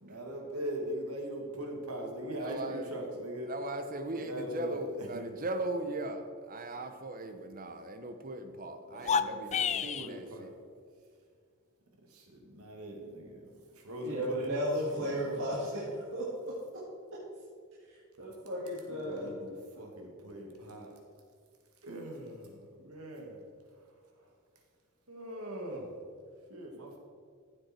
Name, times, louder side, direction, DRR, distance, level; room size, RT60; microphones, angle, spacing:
voice 1, 0.0-3.5 4.1-5.3 8.9-10.5 12.1-14.6 14.9-15.5 18.9-20.9 21.8-23.4 25.1-25.9 26.5-27.0, equal, 75° right, 1 dB, 2.2 m, -41 dB
voice 2, 2.4-2.9 3.5-10.5, right 2 dB, 40° right, 8 dB, 0.9 m, -39 dB
sound 1, 8.9-10.1, left 6 dB, 30° left, 0.4 m, -30 dB
voice 3, 14.0-16.5 18.2-19.3, equal, 60° right, -6 dB, 2.1 m, -34 dB
14.5 x 8.0 x 4.5 m, 2.1 s
head